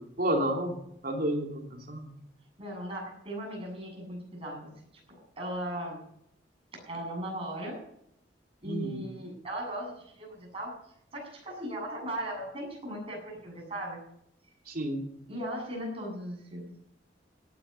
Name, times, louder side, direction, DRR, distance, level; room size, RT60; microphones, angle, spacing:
voice 1, 0.2-0.8 1.0-2.1 8.6-9.0 14.7-15.0, right 1 dB, 55° right, 2 dB, 2.9 m, -30 dB
voice 2, 2.6-4.7 5.4-6.0 6.7-7.8 8.6-10.7 11.1-14.0 15.3-16.7, right 1 dB, 35° right, 0 dB, 7.8 m, -37 dB
17.5 x 10.5 x 5.6 m, 0.73 s
head